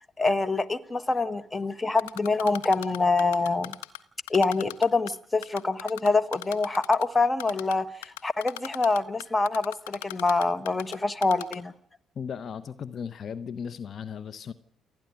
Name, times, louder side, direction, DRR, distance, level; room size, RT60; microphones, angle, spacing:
voice 1, 0.2-3.8 4.3-11.7, left 3 dB, 20° left, 1.4 m, -25 dB
Typing, 2.0-4.0 4.3-5.1 5.4-7.0 7.4-7.7 8.0-10.9 11.2-11.6, left 18 dB, 85° left, 0.8 m, -37 dB
voice 2, 12.2-14.5, left 7 dB, 50° left, 0.9 m, -36 dB
28.5 x 10.5 x 9.8 m
hypercardioid pair, 50°, 0 cm